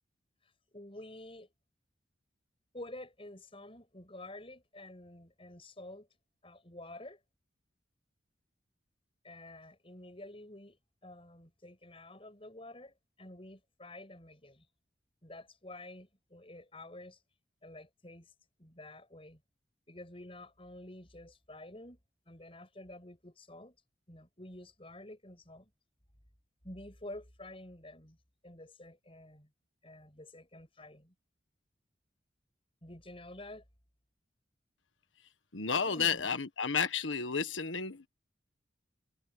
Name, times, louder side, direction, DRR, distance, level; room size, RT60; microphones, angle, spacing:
voice 1, 0.4-1.5 2.7-6.1 6.4-7.2 9.2-14.7 15.2-17.2 17.6-18.3 18.6-19.4 19.9-22.0 22.3-23.8 24.1-25.7 26.6-28.2 28.4-29.5 29.8-31.1 32.8-33.6 35.7-36.3, left 1 dB, 30° left, 7.4 m, -49 dB
voice 2, 35.5-38.1, left 6 dB, 85° left, 1.5 m, -32 dB
head